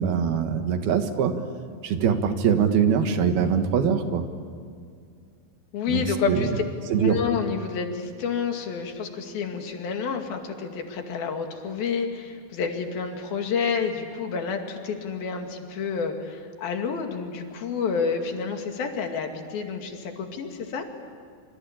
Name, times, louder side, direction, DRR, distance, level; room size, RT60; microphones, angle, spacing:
voice 1, 0.0-1.4 1.8-4.3 5.9-6.4 6.9-7.2, right 7 dB, 85° right, 7 dB, 3.6 m, -23 dB
voice 2, 5.7-6.5 6.8-20.8, left 6 dB, 75° left, 4 dB, 4.1 m, -29 dB
26.5 x 25.5 x 8.8 m, 2.2 s
omnidirectional pair, 4.2 m